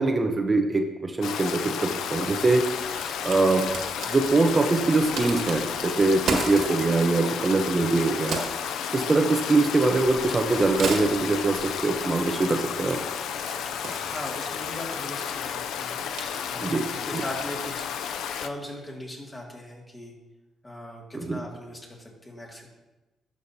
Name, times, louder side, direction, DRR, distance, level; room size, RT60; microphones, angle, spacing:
voice 1, 0.0-3.0 3.2-3.7 4.1-8.4 8.9-13.0 16.6-16.8 17.1-17.2 21.1-21.4, right 3 dB, 25° right, 4 dB, 0.8 m, -23 dB
Stream, 1.2-18.5, left 8 dB, 80° left, 0.4 m, -32 dB
Crack, 2.4-17.9, right 4 dB, 70° right, 1.8 m, -38 dB
voice 2, 13.6-16.0 16.5-20.1 20.6-22.7, left 1 dB, 20° left, -2 dB, 2.2 m, -39 dB
12.0 x 6.3 x 2.8 m, 1.1 s
cardioid pair, 90°, 0 cm